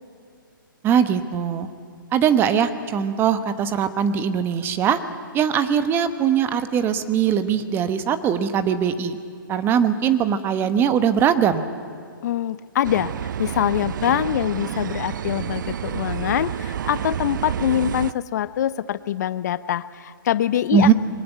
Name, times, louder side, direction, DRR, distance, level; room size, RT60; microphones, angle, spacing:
voice 1, 0.8-1.7 2.1-5.0 5.3-9.2 9.5-11.6 20.7-20.9, right 8 dB, 20° right, 11 dB, 1.1 m, -21 dB
voice 2, 12.2-20.9, left 11 dB, 50° left, 16 dB, 0.6 m, -24 dB
sound 1, 12.8-18.1, right 9 dB, 60° right, 0.5 m, -29 dB
22.0 x 18.5 x 9.2 m, 2.3 s
hypercardioid pair, 140°, 12 cm